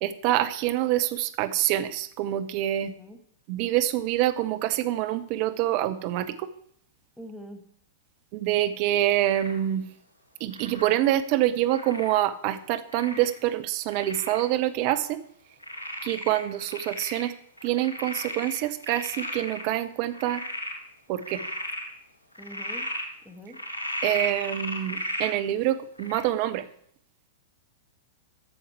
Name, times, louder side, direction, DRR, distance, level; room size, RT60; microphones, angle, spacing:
voice 1, 0.0-2.9 3.5-6.5 8.3-9.9 10.4-15.2 16.0-17.3 17.6-20.4 21.1-21.4 24.0-26.6, right 13 dB, 40° right, 10 dB, 0.7 m, -26 dB
voice 2, 2.8-3.2 7.2-7.6 22.4-22.9 23.2-23.6, equal, 5° left, 6 dB, 1.3 m, -43 dB
Frog, 9.3-9.6 10.5-10.9 11.7-12.1 12.9-13.4 13.9-14.4 14.9-15.0 15.6-17.3 17.6-19.6 20.1-20.8 21.2-21.8 22.4-23.1 23.5-25.3 26.0-26.2, equal, 75° left, 2.1 m, -35 dB
11.5 x 7.2 x 4.6 m, 0.65 s
figure-of-eight pair, 100°, 0 cm